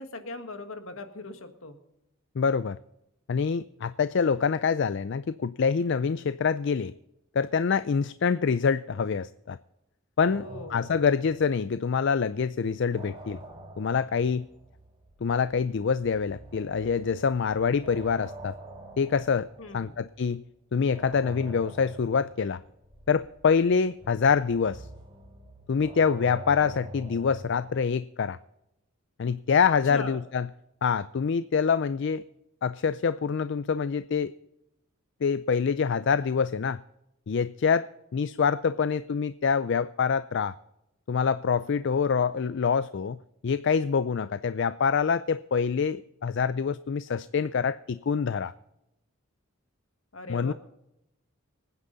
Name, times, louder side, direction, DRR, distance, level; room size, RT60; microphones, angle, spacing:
voice 1, 0.0-1.8 10.3-10.9 19.6-19.9 29.9-30.2 50.1-50.5, left 2 dB, 75° left, 1.7 m, -39 dB
voice 2, 2.4-2.8 3.3-6.9 7.4-9.6 10.2-10.4 10.7-13.4 13.8-14.5 15.2-18.5 19.0-19.5 19.7-20.4 20.7-22.6 23.1-24.9 25.7-28.4 29.2-30.5 30.8-32.2 32.6-34.3 35.2-36.8 37.3-40.5 41.1-43.2 43.4-48.5 50.3-50.5, left 6 dB, 55° left, 0.4 m, -26 dB
sound 1, 10.2-12.1 12.4-20.3 20.9-27.7, right 1 dB, 25° right, 2.9 m, -46 dB
25.0 x 9.7 x 4.0 m
head